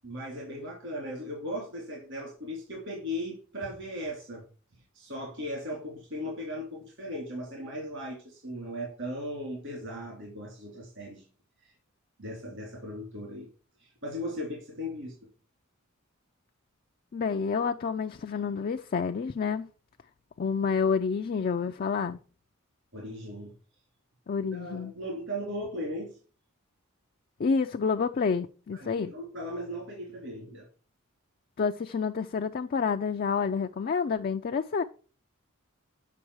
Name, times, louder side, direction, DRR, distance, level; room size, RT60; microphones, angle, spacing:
voice 1, 0.0-4.4 4.9-11.2 11.6-11.7 12.2-13.5 13.8-15.1 22.9-23.5 24.5-26.2 28.7-30.7, equal, 60° right, 3.1 m, -37 dB
voice 2, 17.1-19.7 20.4-22.2 24.3-24.9 27.4-29.1 31.6-34.8, left 5 dB, 45° left, 0.4 m, -29 dB
8.5 x 5.3 x 4.7 m
head